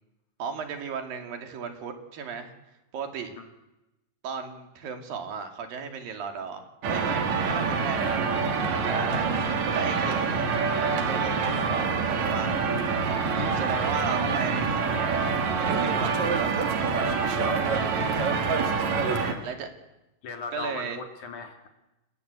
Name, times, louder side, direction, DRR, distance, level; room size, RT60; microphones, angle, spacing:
voice 1, 0.4-2.5 2.9-3.3 4.2-8.2 8.6-9.2 9.7-10.4 10.7-12.6 13.5-15.2 15.6-16.7 19.4-19.7 20.5-21.0, right 6 dB, 85° right, 5 dB, 4.4 m, -35 dB
sound 1, 6.8-19.3, right 5 dB, 55° right, 3.5 m, -26 dB
voice 2, 13.1-13.7 17.4-17.7 19.1-19.5 20.2-21.7, left 5 dB, 60° left, 5 dB, 3.8 m, -39 dB
30.0 x 19.5 x 8.3 m, 0.96 s
omnidirectional pair, 3.9 m